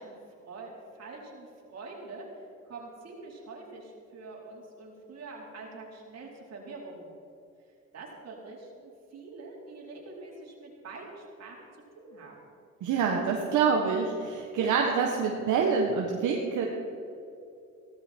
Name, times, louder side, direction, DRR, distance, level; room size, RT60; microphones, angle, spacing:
voice 1, 0.0-7.1 7.9-11.6 11.9-12.5, right 3 dB, 55° right, -2 dB, 4.4 m, -45 dB
voice 2, 12.8-16.7, right 5 dB, 80° right, 0 dB, 1.6 m, -26 dB
16.5 x 14.0 x 4.6 m, 2.7 s
cardioid pair, 90°, 30 cm